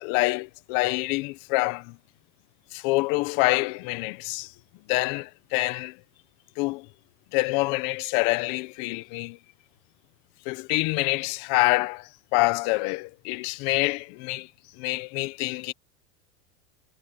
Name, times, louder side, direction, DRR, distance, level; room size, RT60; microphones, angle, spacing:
voice 1, 0.0-2.0 2.7-4.5 4.9-6.0 6.6-6.9 7.3-9.4 10.4-14.5 14.8-15.7, left 23 dB, 45° left, 1.1 m, -26 dB
supercardioid pair, 155°, 36 cm